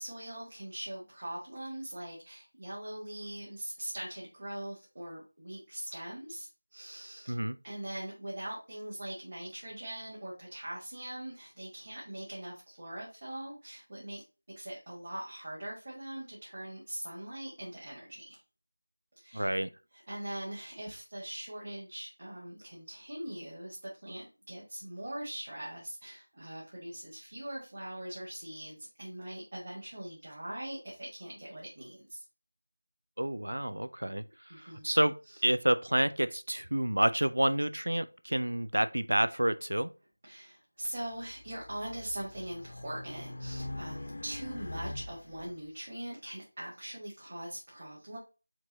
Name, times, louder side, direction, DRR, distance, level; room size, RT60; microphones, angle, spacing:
voice 1, 0.0-7.4 7.6-14.2 14.5-18.4 19.2-19.5 19.9-32.2 34.5-34.8 35.3-35.4 40.2-48.2, right 1 dB, 35° right, 1.4 m, -42 dB
voice 2, 19.3-19.7 33.2-34.2 34.5-35.2 35.4-39.9, right 1 dB, 85° right, 0.4 m, -29 dB
Race car auto racing, 41.1-45.5, left 1 dB, 45° left, 0.5 m, -42 dB
4.5 x 3.0 x 3.9 m
figure-of-eight pair, 175°, 0 cm